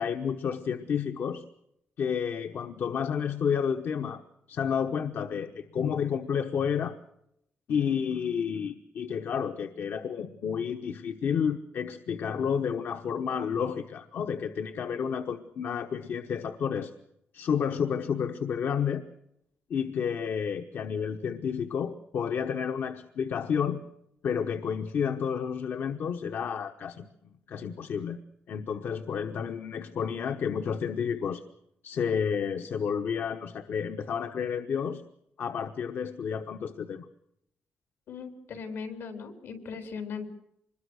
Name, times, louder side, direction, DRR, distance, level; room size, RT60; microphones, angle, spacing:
voice 1, 0.0-1.5 2.0-4.2 4.5-7.0 7.7-16.9 17.3-19.0 19.7-23.8 24.2-27.1 27.5-28.2 28.5-31.4 31.8-35.0 35.4-37.0, left 7 dB, 65° left, 8 dB, 1.1 m, -30 dB
voice 2, 38.1-40.3, left 5 dB, 80° left, 7 dB, 4.1 m, -38 dB
25.5 x 21.5 x 6.4 m, 0.78 s
wide cardioid pair, 165°, 4 cm